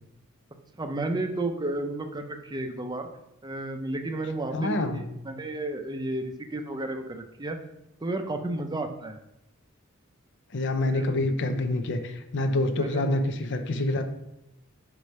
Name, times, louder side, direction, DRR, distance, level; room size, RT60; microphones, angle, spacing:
voice 1, 0.8-3.1 3.4-7.6 8.0-9.2 10.9-11.3 12.8-13.0, right 2 dB, 20° right, 6 dB, 0.6 m, -32 dB
voice 2, 4.5-5.0 10.5-14.1, left 2 dB, 55° left, 8 dB, 0.6 m, -27 dB
5.0 x 4.5 x 5.4 m, 0.87 s
head